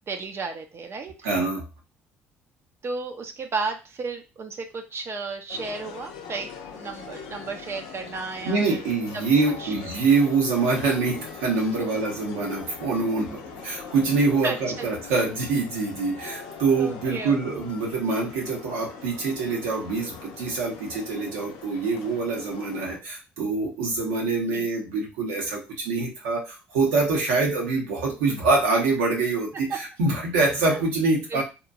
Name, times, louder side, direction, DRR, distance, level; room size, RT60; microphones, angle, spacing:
voice 1, 0.1-1.1 2.8-8.8 9.6-9.7 11.8-11.9 14.4-14.9 16.2-16.4 16.7-17.4 24.5-24.7 29.7-29.8 30.7-30.8 31.3-31.4, right 4 dB, 45° right, 5 dB, 0.5 m, -33 dB
voice 2, 1.2-1.6 8.4-31.4, right 3 dB, 85° right, -1 dB, 0.8 m, -25 dB
sound 1, 5.5-23.0, left 6 dB, 80° left, 0.5 m, -42 dB
2.9 x 2.2 x 2.5 m, 0.29 s
hypercardioid pair, 60°, 6 cm